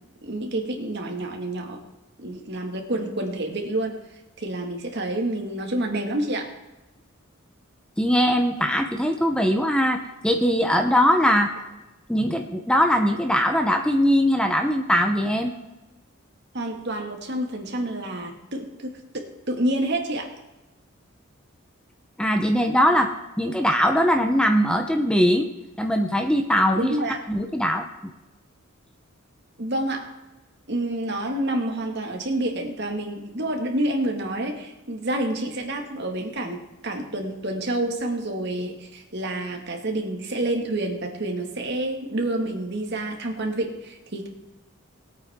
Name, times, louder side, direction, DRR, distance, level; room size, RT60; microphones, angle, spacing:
voice 1, 0.2-1.8 2.2-4.0 4.4-6.5 16.5-20.3 26.8-27.2 29.6-30.1 30.7-44.3, right 1 dB, 55° right, 2 dB, 1.9 m, -28 dB
voice 2, 8.0-11.5 12.1-15.5 22.2-25.5 25.8-27.0 27.3-27.9, equal, 5° left, 4 dB, 0.7 m, -21 dB
19.5 x 8.8 x 3.6 m, 1.0 s
head